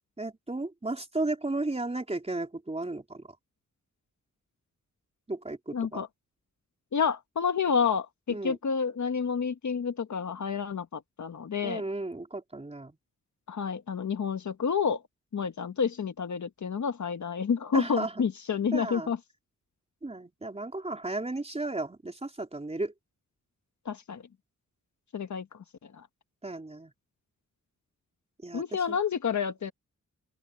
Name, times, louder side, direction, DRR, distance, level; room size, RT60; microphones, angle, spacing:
voice 1, 0.2-3.3 5.3-6.0 8.3-8.6 11.6-13.0 17.7-18.2 18.7-19.1 20.0-22.9 26.4-26.9 28.4-29.0, right 2 dB, 20° right, 3.8 m, -34 dB
voice 2, 5.7-6.1 6.9-11.8 13.5-15.0 15.3-19.2 23.8-24.2 25.1-25.4 28.5-29.7, left 6 dB, 60° left, 1.3 m, -29 dB
open air
wide cardioid pair, 115°, 32 cm